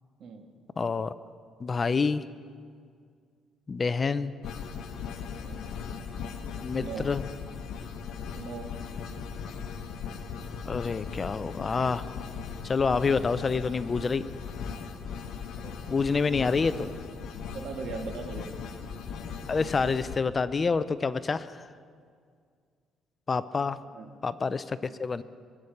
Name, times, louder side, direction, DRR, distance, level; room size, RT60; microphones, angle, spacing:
voice 1, 0.8-1.1 1.6-2.2 3.7-4.3 6.6-7.2 10.7-12.1 12.6-14.2 15.9-16.7 19.5-21.7 23.3-23.8 24.2-25.2, left 4 dB, 25° left, 14 dB, 0.4 m, -27 dB
sound 1, 4.4-20.2, left 6 dB, 70° left, 1.2 m, -38 dB
voice 2, 5.4-5.7 6.8-7.1 8.3-8.7 15.6-16.0 16.3-16.9 17.5-18.5 23.9-24.1 24.8-25.0, right 5 dB, 60° right, 4 dB, 1.8 m, -40 dB
22.0 x 8.6 x 6.6 m, 2.1 s
cardioid pair, 135°, 0 cm